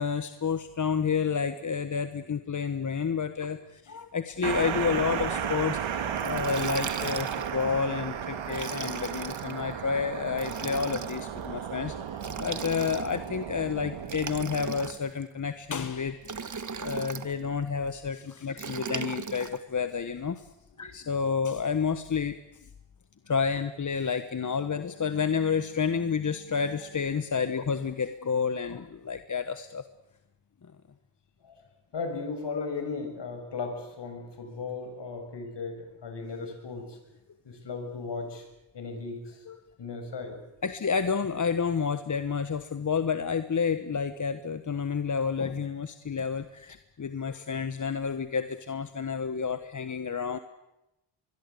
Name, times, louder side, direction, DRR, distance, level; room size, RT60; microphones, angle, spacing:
voice 1, 0.0-20.5 20.8-22.4 23.3-29.8 39.5-39.6 40.6-50.4, left 6 dB, 40° left, 10 dB, 1.3 m, -30 dB
sound 1, 4.4-14.9, right 8 dB, 75° right, 2.4 m, -34 dB
Liquid, 6.2-7.6 8.4-9.5 10.3-11.2 12.2-13.3 14.0-15.2 16.2-17.3 18.6-19.6, right 5 dB, 40° right, 1.6 m, -37 dB
voice 2, 31.9-37.0 37.4-38.5 38.7-39.4 39.8-40.4, left 4 dB, 60° left, 6 dB, 7.1 m, -36 dB
24.5 x 22.0 x 8.5 m, 0.93 s
cardioid pair, 80°, 47 cm